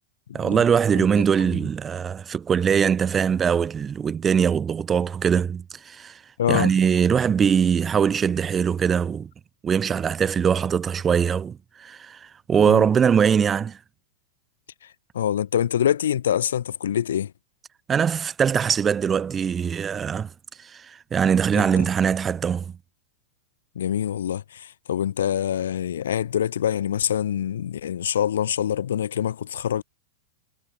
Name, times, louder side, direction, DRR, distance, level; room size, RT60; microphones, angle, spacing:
voice 1, 0.3-6.2 6.5-9.3 9.6-13.8 17.9-20.3 20.6-22.7, right 7 dB, 25° right, 1.2 m, -22 dB
voice 2, 6.4-6.7 12.7-12.8 14.8-14.9 15.1-17.3 21.5-21.9 23.7-29.8, left 9 dB, 75° left, 1.0 m, -25 dB
hypercardioid pair, 105°, 0 cm